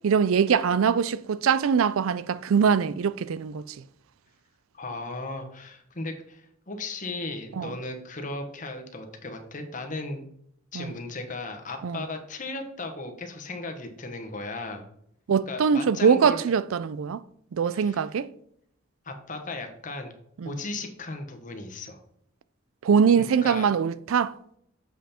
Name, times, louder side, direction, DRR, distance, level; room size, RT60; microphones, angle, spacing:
voice 1, 0.0-3.8 7.6-7.7 10.7-10.9 11.8-12.0 15.3-17.2 17.5-18.3 20.4-20.5 22.8-24.3, right 6 dB, 85° right, 0.4 m, -23 dB
voice 2, 4.7-10.3 10.7-14.9 15.5-16.4 17.7-18.0 19.0-20.1 20.4-22.0 23.2-23.7, left 2 dB, 40° left, 1.2 m, -36 dB
7.4 x 5.6 x 4.3 m
head